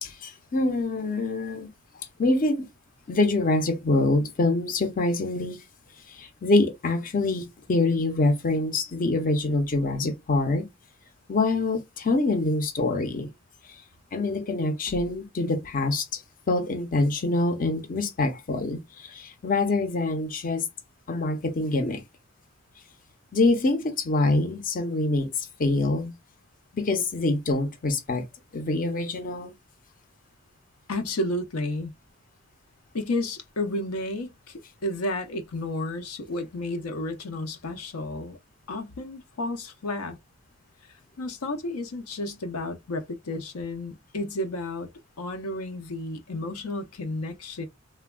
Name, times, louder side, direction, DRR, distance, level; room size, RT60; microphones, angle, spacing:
voice 1, 0.0-1.7 2.2-2.7 3.1-5.6 6.1-10.6 11.3-13.3 13.7-13.8 14.1-16.2 16.5-20.7 21.1-22.0 23.3-26.1 26.7-28.3 28.5-29.5, left 2 dB, 40° left, 0.6 m, -25 dB
voice 2, 30.9-31.9 32.9-38.4 38.7-40.2 40.8-44.9 45.2-47.7, left 1 dB, 80° left, 0.6 m, -32 dB
3.3 x 2.2 x 2.2 m
head